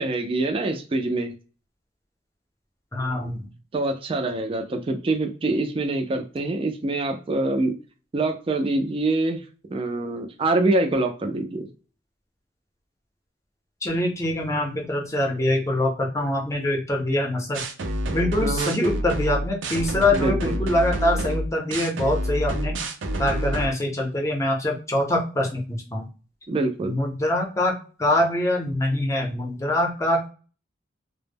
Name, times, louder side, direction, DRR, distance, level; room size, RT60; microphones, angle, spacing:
voice 1, 0.0-1.3 3.7-7.7 8.1-9.4 9.7-11.7 18.4-18.7 20.1-20.7 26.5-26.9, right 2 dB, 30° right, 4 dB, 0.3 m, -25 dB
voice 2, 2.9-3.5 13.8-17.6 18.1-22.8 23.2-26.1 26.8-30.3, left 1 dB, 15° left, 1 dB, 0.6 m, -24 dB
sound 1, 17.5-23.7, right 1 dB, 90° right, 0.5 m, -28 dB
2.0 x 2.0 x 3.3 m, 0.35 s
head